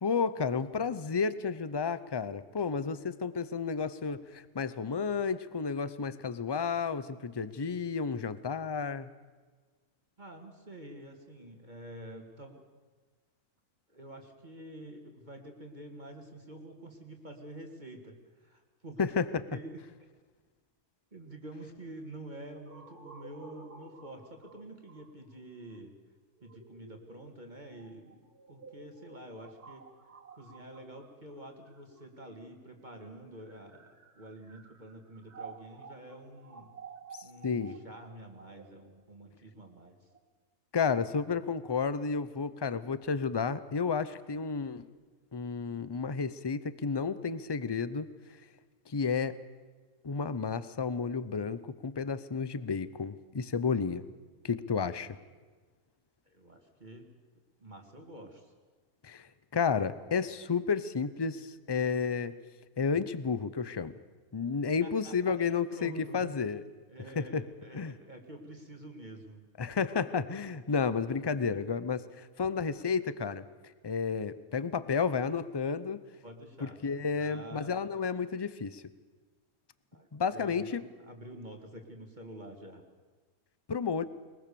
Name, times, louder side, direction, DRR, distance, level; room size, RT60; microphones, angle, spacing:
voice 1, 0.0-9.1 19.0-19.4 37.1-37.8 40.7-44.9 45.3-48.1 48.9-49.4 50.0-54.1 54.4-55.2 59.0-62.4 62.8-63.9 64.3-66.6 67.2-67.4 67.7-67.9 69.6-73.4 73.8-76.0 76.6-78.8 80.1-80.8 83.7-84.0, left 5 dB, 40° left, 15 dB, 0.3 m, -32 dB
voice 2, 10.2-12.6 13.9-18.2 18.4-19.0 19.5-19.8 21.1-25.9 26.4-29.8 30.4-36.7 37.2-40.0 54.6-54.7 56.3-57.1 57.6-58.5 64.8-66.3 66.9-69.4 76.2-78.0 79.9-82.8, right 1 dB, 30° right, 3 dB, 2.1 m, -48 dB
sound 1, 22.7-32.5 33.2-40.2, right 5 dB, 85° right, 3.1 m, -53 dB
22.0 x 21.0 x 6.9 m, 1.4 s
omnidirectional pair, 1.6 m